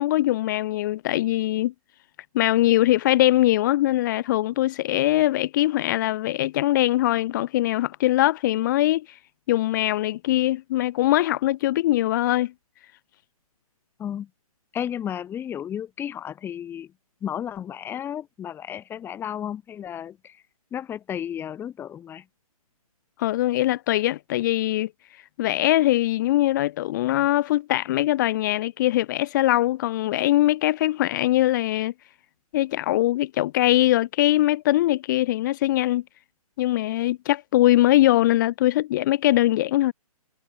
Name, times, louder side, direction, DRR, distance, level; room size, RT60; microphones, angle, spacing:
voice 1, 0.0-1.7 2.3-9.2 9.5-12.5 23.2-24.9 25.4-31.9 32.5-36.0 36.6-39.9, left 15 dB, 30° left, 1.4 m, -22 dB
voice 2, 14.0-14.3 14.7-16.9 17.2-20.4 20.7-22.2, left 9 dB, 10° left, 3.8 m, -33 dB
hypercardioid pair, 150°, 19 cm